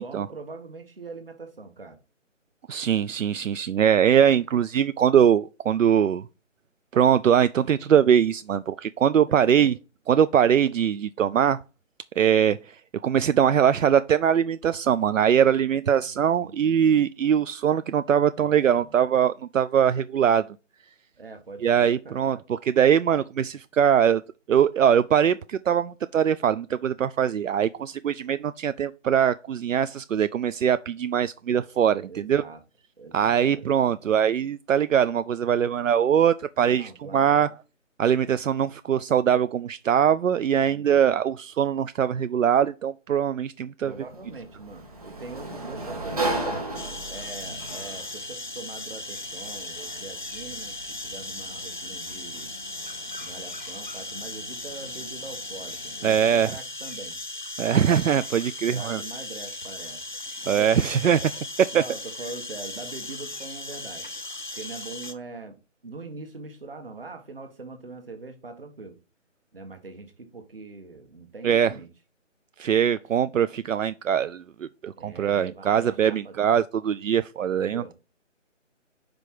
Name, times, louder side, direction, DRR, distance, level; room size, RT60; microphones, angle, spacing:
voice 1, 0.0-2.0 9.3-9.8 15.9-16.9 18.4-19.0 21.2-22.2 32.1-32.6 33.0-33.9 36.7-37.4 43.8-46.7 47.1-52.5 53.2-57.2 58.7-60.0 60.6-61.0 61.7-64.0 64.5-65.6 65.8-69.0 69.5-71.9 75.0-76.4 77.6-77.9, right 3 dB, 45° right, 1.3 m, -42 dB
voice 2, 2.7-6.2 6.9-9.8 10.1-11.6 12.2-12.6 13.0-20.4 21.6-24.2 24.5-32.4 33.1-37.5 38.0-43.9 56.0-56.5 57.6-59.0 60.5-61.2 61.7-61.8 71.4-71.7 72.6-77.8, right 8 dB, 80° right, 0.5 m, -22 dB
Sliding door, 43.9-56.5, right 2 dB, 30° right, 1.3 m, -37 dB
sound 1, 46.7-65.1, left 2 dB, 40° left, 0.6 m, -37 dB
5.2 x 4.7 x 5.9 m
hypercardioid pair, 180°, 38 cm